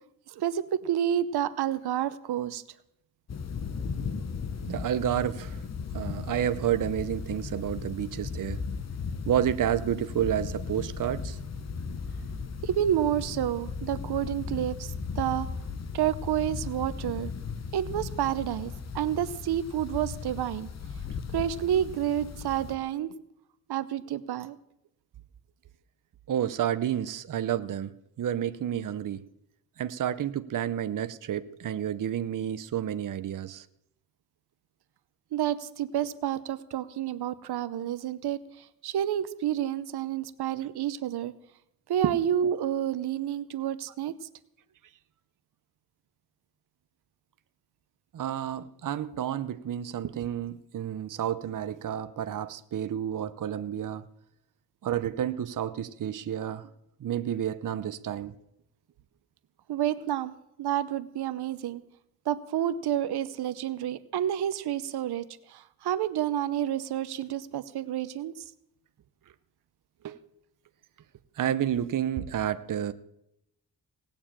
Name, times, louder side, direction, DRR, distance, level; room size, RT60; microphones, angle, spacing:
voice 1, 0.3-2.6 12.6-15.5 15.9-17.3 17.7-20.7 21.3-23.2 23.7-24.6 35.3-41.3 41.9-44.1 59.7-60.3 60.6-61.8 62.3-68.4, right 10 dB, 90° right, 13 dB, 0.9 m, -29 dB
sound 1, 3.3-22.7, left 5 dB, 45° left, 1.2 m, -36 dB
voice 2, 4.7-5.6 5.9-8.6 9.3-11.4 26.3-29.2 29.8-33.7 42.0-42.2 48.1-54.1 54.8-56.7 57.0-58.4 70.0-70.2 71.4-72.9, right 10 dB, 55° right, 12 dB, 0.8 m, -30 dB
18.0 x 7.0 x 8.8 m, 0.82 s
cardioid pair, 100°, 37 cm